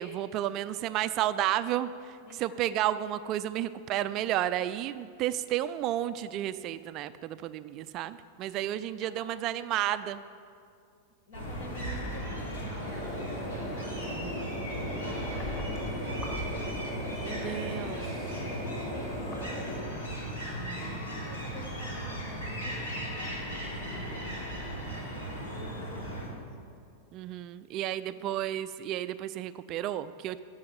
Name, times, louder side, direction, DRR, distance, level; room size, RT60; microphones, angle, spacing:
voice 1, 0.0-10.2 14.0-14.5 17.3-18.0 20.6-21.0 23.9-24.1 27.1-30.4, right 12 dB, 40° right, 13 dB, 0.4 m, -32 dB
voice 2, 2.2-2.8 9.0-9.6 11.3-15.1 15.6-18.0 18.6-20.0 20.9-24.5 24.8-26.7 27.9-28.4, left 1 dB, 50° left, 3 dB, 2.0 m, -50 dB
sound 1, 11.3-26.3, equal, 65° left, 3.4 m, -37 dB
sound 2, 12.8-19.8, equal, 20° left, 3.2 m, -38 dB
15.5 x 5.6 x 9.2 m, 2.3 s
figure-of-eight pair, 90°, 0 cm